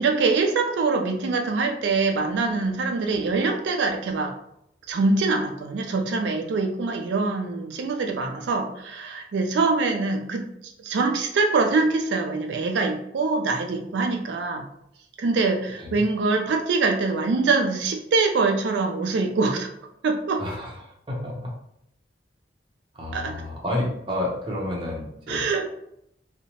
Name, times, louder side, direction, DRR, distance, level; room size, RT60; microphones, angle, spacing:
voice 1, 0.0-4.3 4.9-10.4 10.8-14.7 15.2-19.7 20.0-20.4 23.1-23.3 25.3-25.7, right 3 dB, 85° right, 3 dB, 0.4 m, -24 dB
voice 2, 20.4-21.5 22.9-25.5, left 1 dB, 30° right, -4 dB, 0.6 m, -30 dB
2.7 x 2.0 x 2.9 m, 0.76 s
head